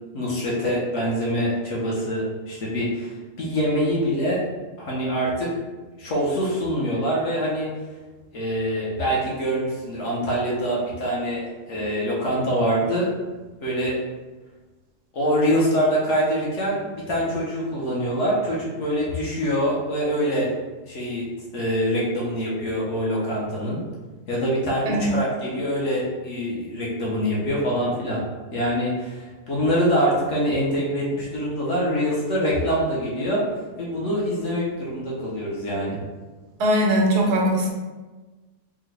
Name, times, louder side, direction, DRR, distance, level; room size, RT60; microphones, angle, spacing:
voice 1, 0.1-4.4 4.8-5.5 6.0-7.7 8.3-13.1 13.6-14.0 15.1-20.5 20.9-21.2 21.5-23.8 24.3-28.2 28.5-33.4 33.8-36.0, equal, 60° left, -4 dB, 0.9 m, -24 dB
voice 2, 36.6-37.7, equal, 90° right, 0 dB, 1.3 m, -20 dB
3.6 x 2.2 x 3.1 m, 1.2 s
omnidirectional pair, 1.7 m